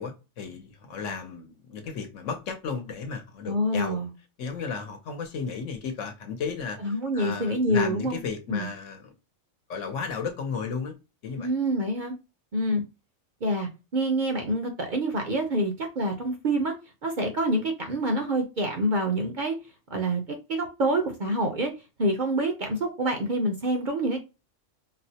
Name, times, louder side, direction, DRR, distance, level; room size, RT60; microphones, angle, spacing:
voice 1, 0.0-4.0 4.4-9.1 9.7-11.0 11.2-11.5, left 5 dB, 75° left, 1.1 m, -34 dB
voice 2, 3.5-4.1 6.8-8.2 8.5-8.7 11.4-12.1 12.5-12.8 13.4-16.7 17.0-19.6 19.9-20.2 20.5-21.7 22.0-24.2, right 1 dB, 50° right, 0.6 m, -26 dB
4.0 x 2.0 x 2.8 m
omnidirectional pair, 1.3 m